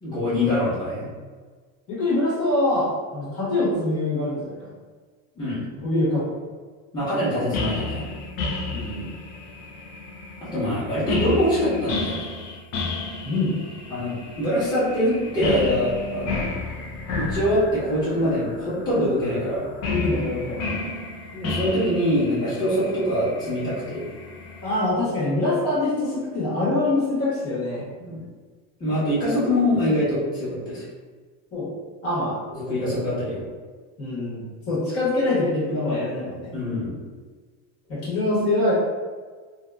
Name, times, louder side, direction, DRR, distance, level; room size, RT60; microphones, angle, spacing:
voice 1, 0.0-1.1 5.4-5.6 6.9-8.0 10.4-12.2 13.9-16.5 17.2-19.7 21.3-24.0 28.0-28.2 28.8-30.8 32.5-33.5 36.5-37.0, equal, 10° left, -11 dB, 1.0 m, -24 dB
voice 2, 1.9-4.7 5.8-6.4 8.7-9.1 13.2-13.5 19.9-20.8 24.6-27.9 31.5-31.7 32.0-32.4 34.0-36.5 37.9-38.7, left 2 dB, 40° left, -8 dB, 1.2 m, -24 dB
sound 1, 7.5-24.8, left 3 dB, 70° left, 0.6 m, -32 dB
2.6 x 2.5 x 2.2 m, 1.5 s
supercardioid pair, 125°, 35 cm